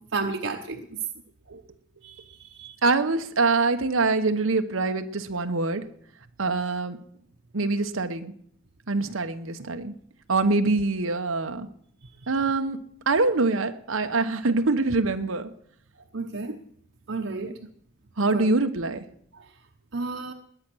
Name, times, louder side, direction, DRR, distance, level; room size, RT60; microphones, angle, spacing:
voice 1, 0.1-0.8 2.0-2.1 2.6-2.7 16.1-16.6 17.1-17.5 18.3-18.5 19.9-20.3, right 3 dB, 65° right, 2 dB, 1.1 m, -31 dB
voice 2, 2.8-5.8 6.4-7.0 7.5-8.3 8.9-9.9 10.3-11.7 12.3-12.8 13.1-15.5 17.4-17.5 18.2-19.0, right 3 dB, 90° right, 7 dB, 1.0 m, -24 dB
20.5 x 8.8 x 6.2 m, 0.64 s
head